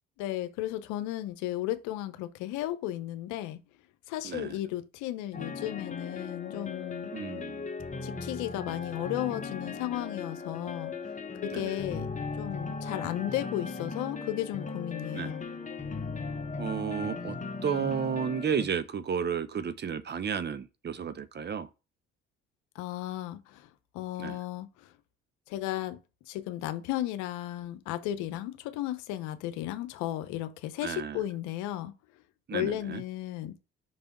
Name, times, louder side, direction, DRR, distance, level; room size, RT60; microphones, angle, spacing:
voice 1, 0.2-3.6 4.1-7.1 8.0-10.9 11.4-12.1 12.4-15.5 22.7-23.7 23.9-24.9 25.5-26.0 26.3-31.9 32.5-33.5, left 14 dB, 80° left, 0.8 m, -34 dB
voice 2, 4.2-4.6 7.1-7.7 11.5-11.8 15.1-15.3 16.6-17.4 17.6-21.7 24.2-24.4 30.8-31.2 32.5-33.0, right 7 dB, 35° right, 0.7 m, -32 dB
sound 1, 5.3-18.7, left 4 dB, 25° left, 1.2 m, -38 dB
5.5 x 3.5 x 5.2 m
supercardioid pair, 65°, 29 cm